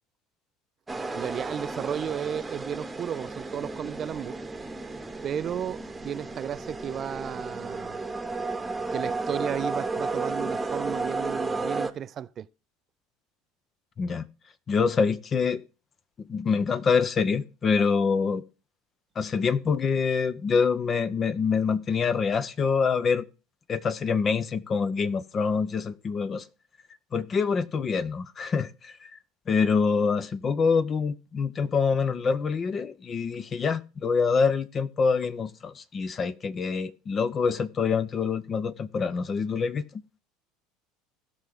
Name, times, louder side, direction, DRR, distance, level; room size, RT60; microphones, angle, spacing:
sound 1, 0.9-11.9, right 3 dB, 15° right, 1.1 m, -33 dB
voice 1, 1.1-4.4 5.2-8.0 8.9-12.5, right 9 dB, 40° right, 0.4 m, -34 dB
voice 2, 14.7-15.6 16.2-18.4 19.2-23.2 23.7-26.4 27.1-29.1 29.5-40.0, left 5 dB, 30° left, 0.7 m, -26 dB
17.0 x 5.7 x 3.7 m
figure-of-eight pair, 70°, 0 cm